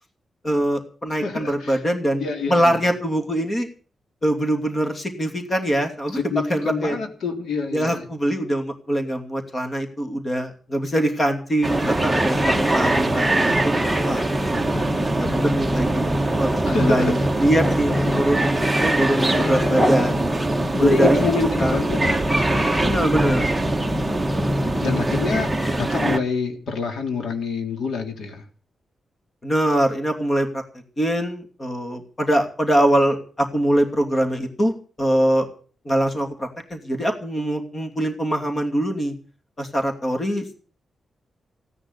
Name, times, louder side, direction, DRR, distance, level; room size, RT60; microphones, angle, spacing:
voice 1, 0.4-3.7 4.2-6.2 6.5-7.0 7.7-14.7 15.2-18.5 18.8-20.2 20.8-21.2 21.6-21.8 22.8-23.5 29.4-30.6 31.0-34.7 35.0-35.5 35.8-39.1 39.6-40.5, right 1 dB, 25° left, 4 dB, 2.7 m, -23 dB
voice 2, 1.2-1.8 2.2-2.8 6.1-8.1 16.6-17.1 18.1-18.3 19.2-20.0 20.7-22.2 24.8-28.4, left 4 dB, 90° left, 5 dB, 3.2 m, -26 dB
sound 1, 11.6-26.2, right 1 dB, 5° right, 1.3 m, -22 dB
16.5 x 9.9 x 8.1 m, 0.41 s
wide cardioid pair, 140°, 0 cm